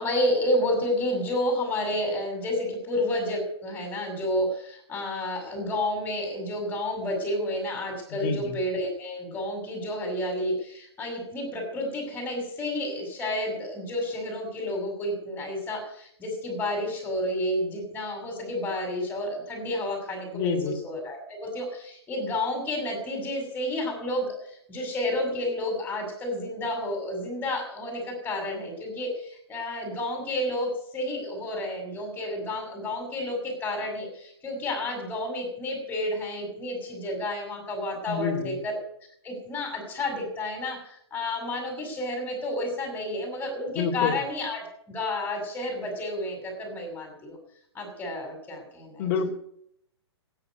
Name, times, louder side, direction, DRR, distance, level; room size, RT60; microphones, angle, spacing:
voice 1, 0.0-38.8 39.2-47.4 47.7-49.3, left 1 dB, 10° left, 3 dB, 6.4 m, -30 dB
voice 2, 8.1-8.6 20.3-20.8 38.1-38.6 43.7-44.2 49.0-49.3, left 6 dB, 35° left, 3 dB, 2.6 m, -28 dB
13.5 x 10.0 x 9.4 m, 0.71 s
figure-of-eight pair, 120°, 14 cm